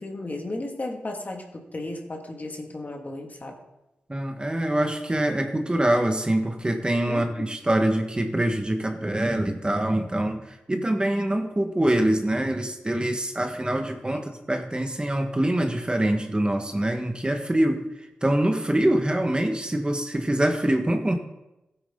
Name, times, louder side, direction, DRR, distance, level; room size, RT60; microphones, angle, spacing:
voice 1, 0.0-3.6 7.1-7.5 14.1-14.2, left 2 dB, 40° left, 2 dB, 2.3 m, -34 dB
voice 2, 4.1-17.8 18.2-21.2, right 1 dB, 25° right, 4 dB, 1.6 m, -24 dB
15.5 x 9.1 x 3.9 m, 0.93 s
cardioid pair, 45°, 4 cm